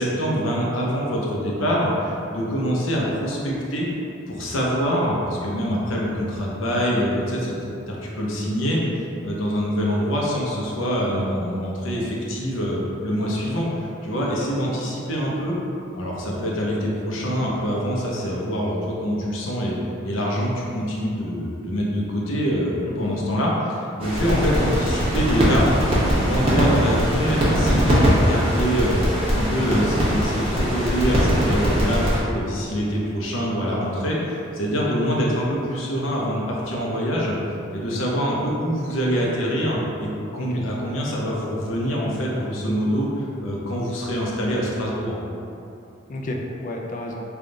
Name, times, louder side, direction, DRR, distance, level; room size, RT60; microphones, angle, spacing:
voice 1, 0.0-3.9 4.3-7.5 7.9-8.8 9.2-15.6 15.9-19.8 20.0-25.7 26.1-29.0 29.3-37.3 37.7-45.2, equal, 75° left, -4 dB, 0.7 m, -25 dB
voice 2, 22.8-23.1 35.0-35.3 40.4-40.6 46.1-47.2, left 1 dB, 40° left, 1 dB, 0.4 m, -32 dB
sound 1, 24.0-32.2, equal, 30° right, 0.8 m, -21 dB
3.5 x 2.3 x 3.8 m, 2.7 s
head